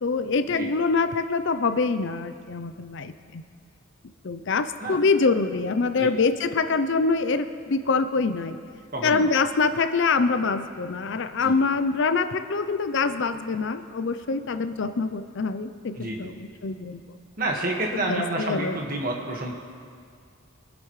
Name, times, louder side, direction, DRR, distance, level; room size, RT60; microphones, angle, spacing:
voice 1, 0.0-3.4 4.2-8.6 9.0-17.1 17.9-18.8, left 4 dB, 55° left, 11 dB, 0.5 m, -25 dB
voice 2, 8.9-9.3 11.4-11.5 15.9-16.3 17.4-19.6, right 2 dB, 40° right, 0 dB, 1.6 m, -29 dB
23.5 x 10.5 x 3.2 m, 2.1 s
head